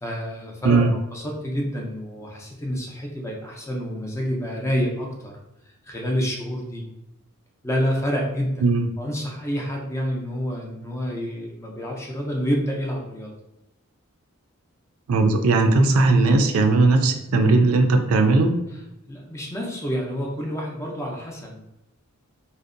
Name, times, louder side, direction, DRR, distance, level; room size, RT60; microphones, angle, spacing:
voice 1, 0.0-5.3 5.9-6.8 7.6-8.6 9.0-13.3 19.1-21.6, equal, 15° left, -1 dB, 0.4 m, -28 dB
voice 2, 0.6-0.9 8.6-8.9 15.1-18.5, right 3 dB, 90° right, 5 dB, 0.4 m, -18 dB
2.6 x 2.1 x 2.5 m, 0.92 s
head